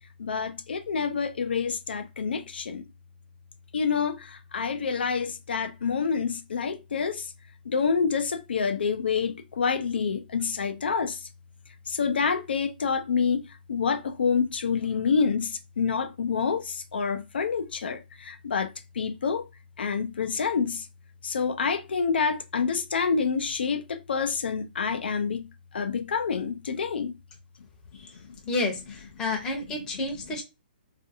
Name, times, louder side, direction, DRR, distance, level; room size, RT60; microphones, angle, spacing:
voice 1, 0.2-2.8 3.7-7.3 7.7-11.2 11.9-19.5 19.8-20.9 21.2-25.5 25.7-27.1, left 5 dB, 90° left, 0.4 m, -27 dB
voice 2, 28.5-30.4, left 2 dB, 10° left, 0.6 m, -30 dB
2.5 x 2.5 x 2.6 m
hypercardioid pair, 170°, 5 cm